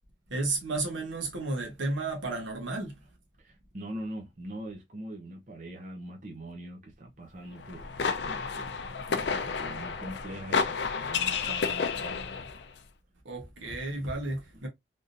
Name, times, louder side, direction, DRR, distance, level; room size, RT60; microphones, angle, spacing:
voice 1, 0.3-3.0 13.2-14.7, right 2 dB, 80° right, 1.2 m, -32 dB
voice 2, 3.4-8.7 9.1-12.5, right 1 dB, 40° right, 0.7 m, -42 dB
sound 1, 7.6-12.6, left 5 dB, 65° left, 0.5 m, -31 dB
3.5 x 2.7 x 2.5 m
head